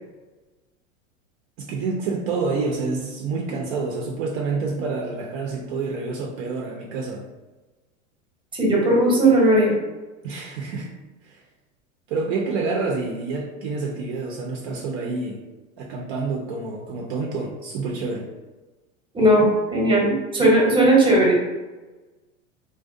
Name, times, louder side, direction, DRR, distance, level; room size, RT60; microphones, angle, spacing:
voice 1, 1.6-7.2 10.2-10.9 11.3-11.4 12.1-15.4 15.8-18.3, right 4 dB, 55° right, -1 dB, 0.5 m, -28 dB
voice 2, 8.6-9.8 19.1-21.3, right 1 dB, 10° right, -3 dB, 0.8 m, -17 dB
2.4 x 2.1 x 2.5 m, 1.2 s
hypercardioid pair, 100°, 41 cm